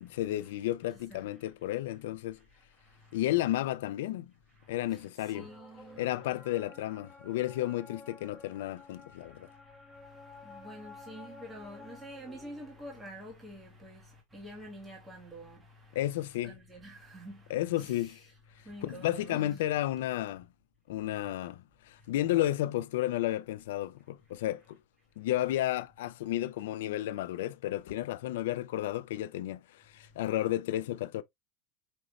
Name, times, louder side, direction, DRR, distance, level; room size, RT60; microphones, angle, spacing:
voice 1, 0.0-2.4 3.1-4.3 4.7-5.5 6.0-9.5 15.9-16.6 17.5-18.2 18.8-20.5 20.9-24.8 25.2-31.2, left 14 dB, 85° left, 0.4 m, -32 dB
sound 1, 5.2-13.4, left 3 dB, 5° left, 1.7 m, -53 dB
voice 2, 5.3-6.1 10.2-15.6 16.4-18.2 18.6-19.6, right 1 dB, 10° right, 1.6 m, -47 dB
5.3 x 3.1 x 2.5 m
supercardioid pair, 145°, 0 cm